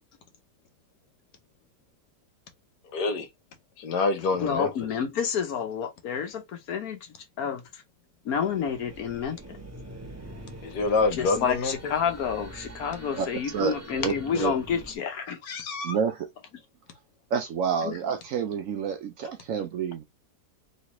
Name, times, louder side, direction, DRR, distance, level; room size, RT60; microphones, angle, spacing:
voice 1, 2.8-3.3 3.8-4.7 10.6-11.9, left 3 dB, 85° left, 1.4 m, -26 dB
voice 2, 4.4-7.0 7.4-7.8 8.2-9.4 11.2-16.0 17.9-18.0, left 7 dB, 70° left, 1.3 m, -29 dB
sound 1, 8.3-15.0, right 1 dB, 15° right, 0.5 m, -44 dB
voice 3, 13.2-13.7 14.0-14.5 15.8-16.3 17.3-20.0, right 7 dB, 70° right, 0.9 m, -29 dB
3.2 x 3.1 x 2.9 m
omnidirectional pair, 1.7 m